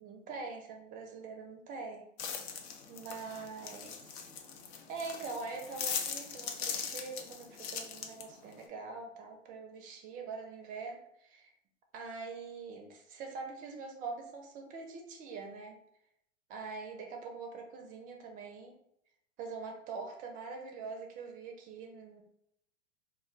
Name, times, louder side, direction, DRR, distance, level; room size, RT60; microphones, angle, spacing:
voice 1, 0.0-2.0 2.9-4.3 4.9-11.5 11.9-15.8 16.5-18.8 19.4-22.2, right 4 dB, 25° right, 3 dB, 0.4 m, -44 dB
sound 1, 2.2-8.6, left 7 dB, 60° left, 0.6 m, -40 dB
2.3 x 2.1 x 3.7 m, 0.75 s
hypercardioid pair, 115°, 38 cm